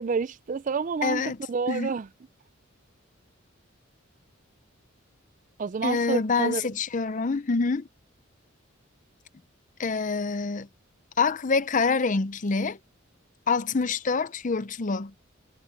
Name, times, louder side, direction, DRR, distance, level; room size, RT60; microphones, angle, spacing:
voice 1, 0.0-1.2 1.5-2.1 5.6-6.6, right 5 dB, 40° right, 0.4 m, -28 dB
voice 2, 1.0-1.4 1.7-1.9 5.8-7.9 9.8-10.7 11.2-12.8 13.5-15.1, left 4 dB, 40° left, 0.6 m, -26 dB
head